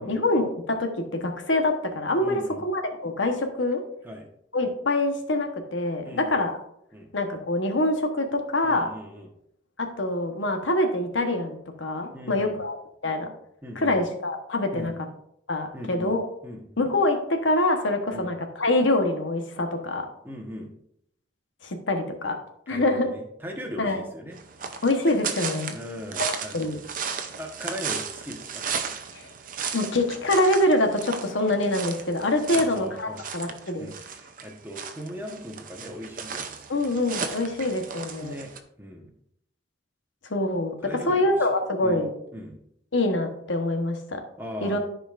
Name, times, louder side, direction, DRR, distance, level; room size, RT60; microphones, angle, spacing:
voice 1, 0.0-3.8 4.5-6.6 7.1-8.9 9.8-12.8 13.0-13.3 13.8-14.9 15.5-16.2 16.8-20.1 21.6-22.4 22.7-23.1 23.8-24.0 24.8-25.8 26.2-26.8 29.1-29.3 29.7-33.9 36.7-38.3 40.3-40.7 41.1-42.1 42.9-44.2 44.6-44.8, left 2 dB, 80° left, 5 dB, 1.1 m, -25 dB
voice 2, 2.2-2.6 4.0-4.3 6.0-6.4 6.9-7.1 8.6-9.3 12.1-12.6 13.6-14.0 14.7-14.9 15.7-16.2 16.4-16.8 18.1-18.3 20.2-20.7 22.7-24.4 25.7-26.8 27.3-28.6 32.5-33.3 33.8-36.8 38.2-38.5 38.8-39.1 40.8-41.4 41.8-42.1 42.3-42.6 44.4-44.8, equal, 10° right, 1 dB, 1.1 m, -39 dB
sound 1, 24.3-38.6, right 6 dB, 45° right, 0.6 m, -35 dB
13.5 x 5.0 x 2.5 m, 0.73 s
head